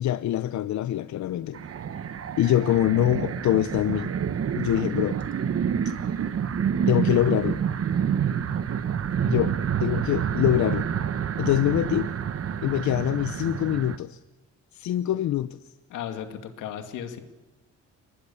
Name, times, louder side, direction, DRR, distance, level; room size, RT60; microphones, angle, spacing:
voice 1, 0.0-1.6 2.4-4.1 4.5-5.2 6.9-7.6 9.2-9.5 9.8-10.9 11.4-12.1 12.6-14.2 14.7-15.6, left 12 dB, 70° left, 13 dB, 0.8 m, -24 dB
sound 1, 1.5-14.0, right 8 dB, 50° right, 1.3 m, -28 dB
voice 2, 15.9-17.2, left 9 dB, 90° left, 7 dB, 2.4 m, -36 dB
23.5 x 20.0 x 7.0 m, 1.1 s
cardioid pair, 90°, 30 cm